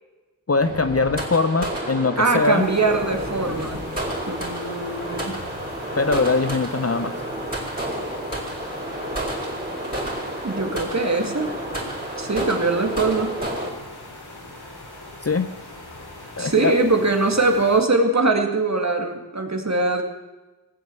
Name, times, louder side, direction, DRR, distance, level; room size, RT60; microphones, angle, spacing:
voice 1, 0.5-2.7 6.0-7.1 15.2-15.5 16.4-16.7, left 3 dB, 40° left, 11 dB, 0.8 m, -21 dB
sound 1, 0.6-13.7, right 1 dB, 20° right, 4.5 m, -30 dB
sound 2, 2.2-17.8, left 2 dB, 75° left, 3.2 m, -41 dB
voice 2, 2.2-3.9 4.3-5.4 10.4-11.5 12.2-13.4 16.4-20.0, right 3 dB, 45° right, 3 dB, 2.3 m, -22 dB
18.5 x 7.8 x 7.6 m, 1.2 s
cardioid pair, 40°, 39 cm